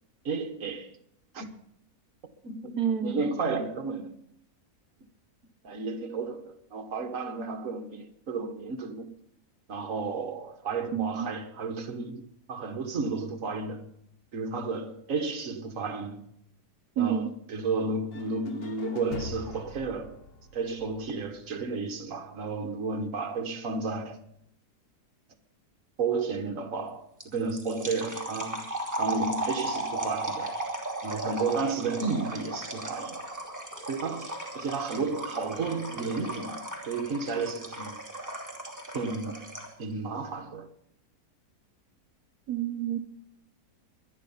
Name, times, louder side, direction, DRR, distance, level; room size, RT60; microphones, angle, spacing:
voice 1, 0.2-1.0 1.3-1.5 2.4-4.1 5.6-9.1 9.7-13.9 14.3-16.3 17.0-20.2 20.5-24.2 26.0-28.7 29.0-30.5 31.0-33.2 33.9-38.0 38.9-39.5 39.8-40.7, right 4 dB, 60° right, 1.7 m, -32 dB
voice 2, 2.8-3.3 10.9-11.3 17.0-17.3 42.5-43.0, right 9 dB, 80° right, 1.4 m, -28 dB
sound 1, 18.1-22.0, left 3 dB, 40° left, 1.3 m, -44 dB
sound 2, 27.2-39.8, right 2 dB, 10° right, 2.8 m, -36 dB
24.0 x 10.0 x 5.6 m
omnidirectional pair, 1.6 m